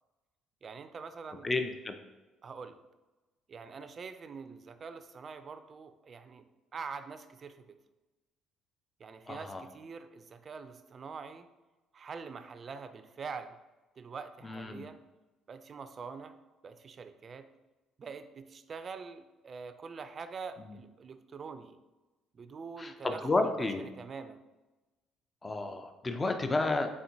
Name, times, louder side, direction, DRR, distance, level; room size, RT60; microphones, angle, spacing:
voice 1, 0.6-1.5 2.4-2.8 3.5-6.4 6.7-7.8 9.0-11.5 11.9-13.6 14.0-15.0 15.5-16.4 16.6-17.5 18.0-21.8 22.3-24.4, right 5 dB, 45° right, 10 dB, 0.3 m, -44 dB
voice 2, 1.4-1.9 9.3-9.6 14.4-14.8 20.6-20.7 22.8-23.8 25.4-26.9, left 2 dB, 25° left, 6 dB, 0.4 m, -31 dB
4.2 x 3.5 x 2.7 m, 1.1 s
supercardioid pair, 65°, 0 cm